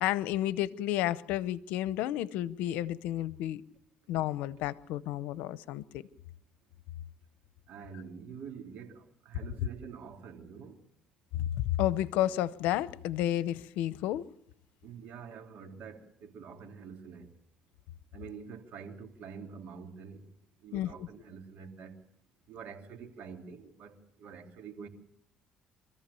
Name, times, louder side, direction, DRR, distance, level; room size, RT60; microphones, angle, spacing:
voice 1, 0.0-3.6 4.1-6.0 11.3-14.3 20.7-21.1, left 13 dB, 90° left, 0.8 m, -31 dB
voice 2, 7.7-10.8 14.8-17.3 18.1-20.2 20.6-22.0 22.5-24.9, right 6 dB, 65° right, 3.1 m, -46 dB
25.5 x 14.5 x 6.9 m
cardioid pair, 110°, 3 cm